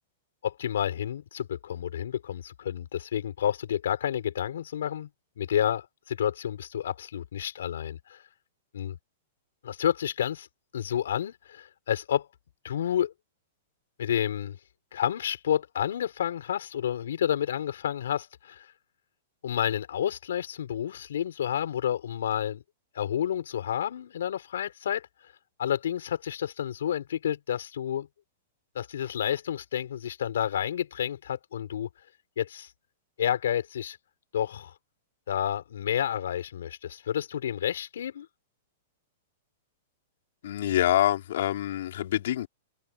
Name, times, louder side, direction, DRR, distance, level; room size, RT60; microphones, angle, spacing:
voice 1, 0.4-5.1 5.4-8.2 8.7-9.0 9.6-10.5 10.7-12.3 12.6-13.1 14.0-14.6 14.9-18.7 19.4-22.6 22.9-25.1 25.6-28.1 28.7-31.9 32.4-32.7 33.2-34.0 34.3-34.7 35.3-38.3, left 10 dB, 75° left, 5.7 m, -30 dB
voice 2, 40.4-42.5, left 12 dB, 55° left, 4.4 m, -26 dB
supercardioid pair, 180°, 0 cm